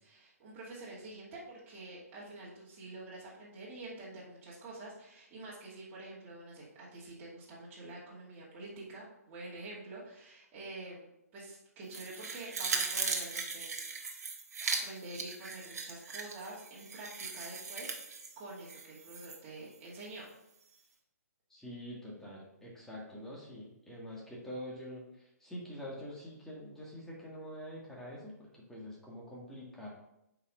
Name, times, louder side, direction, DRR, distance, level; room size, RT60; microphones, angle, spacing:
voice 1, 0.0-14.0 14.6-20.3, right 2 dB, 25° right, -7 dB, 2.5 m, -47 dB
sound 1, 11.9-19.4 19.7-19.8, right 4 dB, 70° right, 1.4 m, -38 dB
voice 2, 21.5-29.9, equal, 5° left, -5 dB, 2.1 m, -45 dB
8.1 x 5.1 x 3.9 m, 0.84 s
figure-of-eight pair, 135°, 9 cm